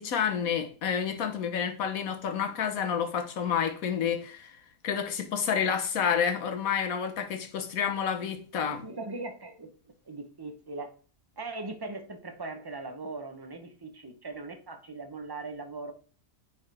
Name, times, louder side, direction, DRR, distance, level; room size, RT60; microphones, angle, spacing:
voice 1, 0.0-4.6 4.8-8.8, left 7 dB, 65° left, 1.4 m, -29 dB
voice 2, 8.7-9.7 10.1-10.9 11.4-15.9, right 3 dB, 30° right, 0.4 m, -39 dB
9.5 x 4.4 x 3.4 m
omnidirectional pair, 1.6 m